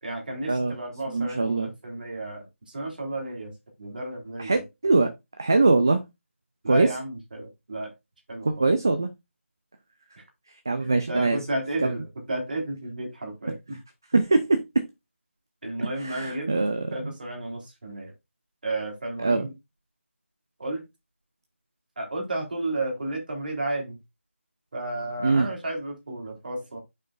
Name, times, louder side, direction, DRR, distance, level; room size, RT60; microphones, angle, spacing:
voice 1, 0.0-4.6 6.6-7.9 8.3-8.7 10.2-10.3 10.8-13.8 15.6-16.5 16.9-18.1 18.6-19.5 20.6-20.8 22.0-24.0 24.7-26.8, right 2 dB, 40° right, 3.0 m, -32 dB
voice 2, 1.1-1.7 4.4-5.1 5.4-6.0 6.7-6.9 8.4-9.1 10.7-11.4 11.8-12.0 14.1-14.8 16.0-17.1 19.2-19.5 25.2-25.5, right 3 dB, 15° right, 0.3 m, -22 dB
9.1 x 5.4 x 2.4 m
figure-of-eight pair, 175°, 7 cm